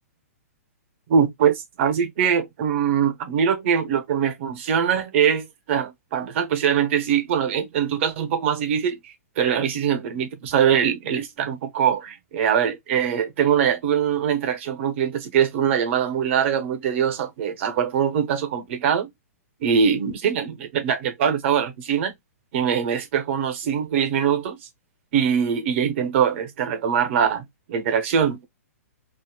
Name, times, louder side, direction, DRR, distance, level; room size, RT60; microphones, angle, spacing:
voice 1, 1.1-19.1 19.6-22.2 22.5-24.6 25.1-28.5, right 8 dB, 50° right, 1.0 m, -22 dB
2.7 x 2.1 x 3.8 m
hypercardioid pair, 125°, 8 cm